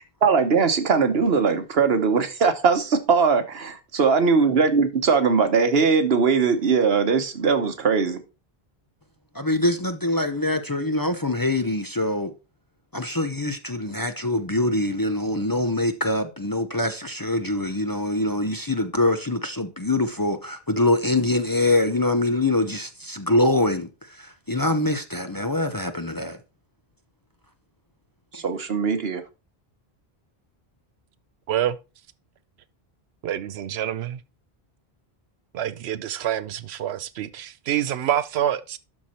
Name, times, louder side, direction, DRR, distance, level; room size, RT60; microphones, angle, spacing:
voice 1, 0.2-8.2 28.3-29.2, right 5 dB, 75° right, 1.3 m, -20 dB
voice 2, 9.3-12.3 12.9-26.4, left 2 dB, 25° left, 0.6 m, -24 dB
voice 3, 33.2-34.2 35.5-38.8, right 11 dB, 90° right, 0.9 m, -27 dB
12.0 x 4.6 x 4.3 m
omnidirectional pair, 1.0 m